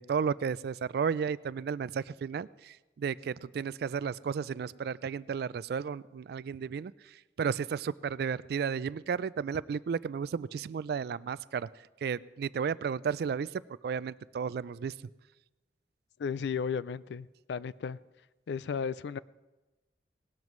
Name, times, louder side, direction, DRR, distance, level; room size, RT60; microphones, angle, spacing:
voice 1, 0.0-6.9 7.4-11.7 12.0-14.9, right 6 dB, 60° right, 19 dB, 0.3 m, -33 dB
voice 2, 16.2-18.0 18.5-19.2, left 6 dB, 75° left, 19 dB, 0.4 m, -34 dB
19.0 x 12.0 x 3.1 m, 1.1 s
head